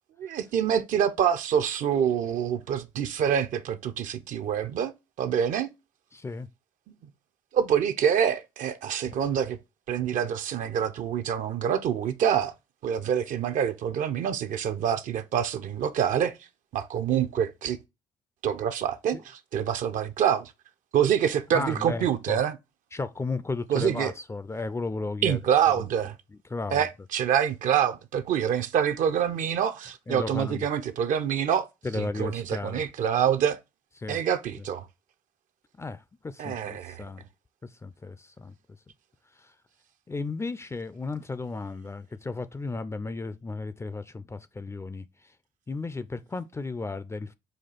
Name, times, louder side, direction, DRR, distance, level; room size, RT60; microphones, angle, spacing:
voice 1, 0.2-4.9 5.2-5.7 7.5-9.6 9.9-12.5 12.8-16.3 16.7-17.8 18.4-19.2 19.5-20.5 20.9-22.6 23.7-24.1 25.2-26.2 26.7-31.7 31.9-33.6 34.1-34.9 36.4-37.0, right 8 dB, 55° right, 0.5 m, -26 dB
voice 2, 6.1-6.5 19.1-19.2 21.5-22.4 22.9-25.4 25.8-25.9 26.3-26.9 30.1-30.7 31.8-32.8 34.0-34.2 35.8-37.2 37.6-38.5 39.4-39.5 40.1-45.3 45.7-47.3, left 3 dB, 15° left, 0.4 m, -34 dB
4.3 x 2.3 x 4.0 m
hypercardioid pair, 50°, 16 cm